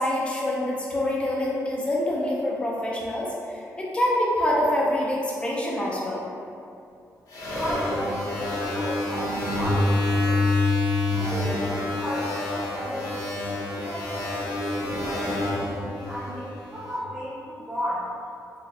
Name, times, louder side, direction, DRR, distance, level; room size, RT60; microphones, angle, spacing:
voice 1, 0.0-6.2, left 1 dB, 15° left, -4 dB, 0.5 m, -26 dB
sound 1, 7.3-16.8, left 2 dB, 65° left, 0.8 m, -27 dB
voice 2, 7.5-10.5 11.1-13.1 13.8-18.1, equal, 10° right, -10 dB, 1.0 m, -34 dB
3.9 x 2.3 x 2.7 m, 2.6 s
wide cardioid pair, 155°, 6 cm